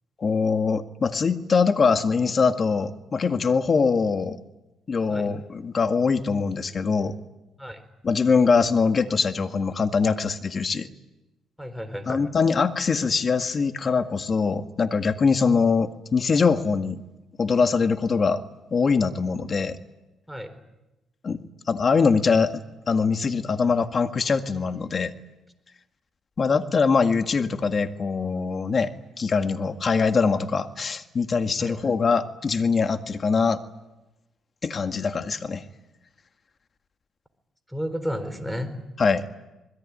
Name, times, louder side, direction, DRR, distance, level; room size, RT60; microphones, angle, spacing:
voice 1, 0.2-4.4 4.9-7.1 8.0-10.9 12.1-17.0 17.4-18.4 18.7-19.8 21.2-21.4 21.7-25.1 26.4-28.9 29.2-33.6 34.6-35.6 39.0-39.3, left 5 dB, 40° left, 8 dB, 1.9 m, -23 dB
voice 2, 11.6-12.3 20.3-20.5 31.6-31.8 37.7-38.8, equal, ahead, 8 dB, 4.4 m, -32 dB
25.0 x 21.5 x 9.9 m, 0.99 s
cardioid pair, 90°, 0 cm